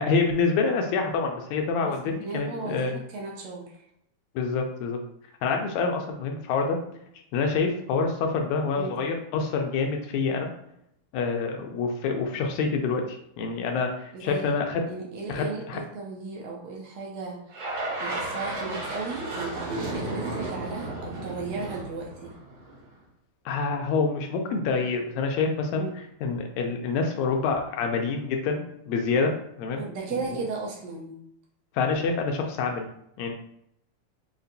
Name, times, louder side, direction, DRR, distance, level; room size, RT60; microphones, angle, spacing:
voice 1, 0.0-3.0 4.4-5.0 5.4-6.8 7.3-10.5 11.1-14.8 15.3-15.8 23.5-25.9 26.2-29.3 29.6-29.8 31.7-32.9 33.2-33.3, left 4 dB, 80° left, 3 dB, 1.8 m, -27 dB
voice 2, 1.8-3.8 8.8-9.0 14.1-14.6 14.9-17.4 18.0-22.3 25.8-26.0 29.8-31.2, right 4 dB, 75° right, -1 dB, 1.7 m, -35 dB
sound 1, 17.5-22.9, right 2 dB, 60° right, 2.1 m, -34 dB
5.1 x 2.4 x 2.6 m, 0.74 s
omnidirectional pair, 3.4 m